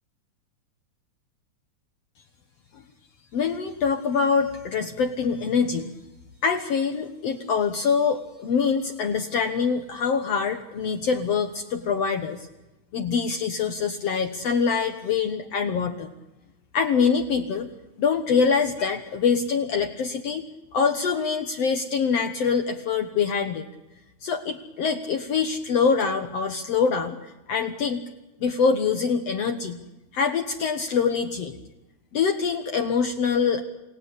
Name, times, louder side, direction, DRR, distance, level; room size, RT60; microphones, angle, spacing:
voice 1, 3.3-5.9 6.4-12.5 12.9-16.1 16.7-17.7 18.0-20.4 20.7-23.7 24.2-28.0 28.4-29.8 30.1-31.6 32.1-33.6, left 6 dB, 60° left, 6 dB, 2.2 m, -24 dB
28.5 x 18.5 x 8.3 m, 1.0 s
omnidirectional pair, 3.4 m